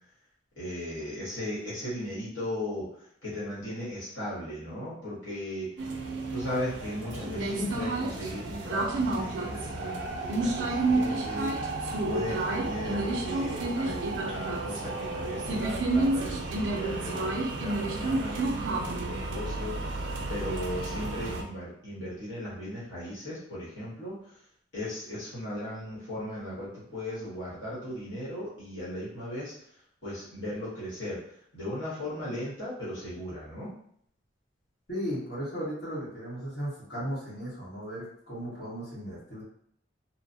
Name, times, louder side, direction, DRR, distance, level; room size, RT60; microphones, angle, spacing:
voice 1, 0.6-2.9 3.2-5.7 6.3-24.4 24.7-29.5 30.0-31.2 31.5-33.7, left 1 dB, 80° left, -9 dB, 1.1 m, -37 dB
sound 1, 5.8-21.4, right 2 dB, 75° right, 0.4 m, -30 dB
voice 2, 34.9-39.4, equal, 60° left, -9 dB, 1.3 m, -36 dB
3.0 x 2.0 x 2.6 m, 0.67 s
head